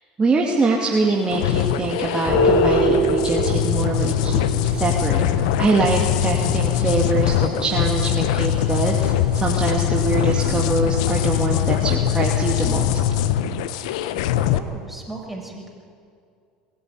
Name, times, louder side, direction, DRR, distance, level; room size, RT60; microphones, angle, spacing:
voice 1, 0.2-5.3 5.6-13.0, right 3 dB, 25° right, -1 dB, 2.6 m, -23 dB
sound 1, 1.3-14.6, left 11 dB, 75° left, 0.9 m, -22 dB
sound 2, 2.2-12.4, equal, 45° left, 5.3 m, -27 dB
sound 3, 5.2-10.6, right 5 dB, 45° right, 5.1 m, -42 dB
voice 2, 14.4-15.7, right 2 dB, 5° right, -1 dB, 6.5 m, -36 dB
21.5 x 14.5 x 9.7 m, 2.4 s
hypercardioid pair, 80°, 4 cm